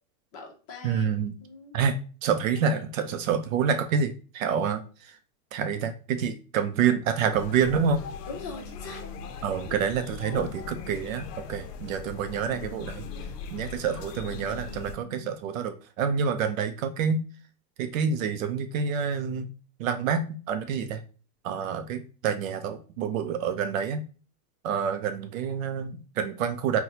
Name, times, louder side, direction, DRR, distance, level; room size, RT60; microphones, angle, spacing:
voice 1, 0.3-1.1 1.4-1.8 2.6-3.1 8.3-9.0, left 3 dB, 30° left, 1 dB, 0.7 m, -42 dB
voice 2, 0.8-1.3 1.7-2.0 2.2-5.1 5.5-8.0 9.4-13.0 13.5-17.2 17.8-19.5 19.8-21.0 21.4-24.0 24.6-26.8, right 6 dB, 60° right, 8 dB, 0.5 m, -27 dB
sound 1, 7.3-14.9, left 6 dB, 75° left, 0.6 m, -40 dB
Telephone, 8.3-9.4 10.3-11.4 12.3-13.3 14.3-15.4, left 1 dB, 20° right, 0.8 m, -47 dB
3.9 x 2.2 x 2.8 m, 0.37 s
supercardioid pair, 145°, 48 cm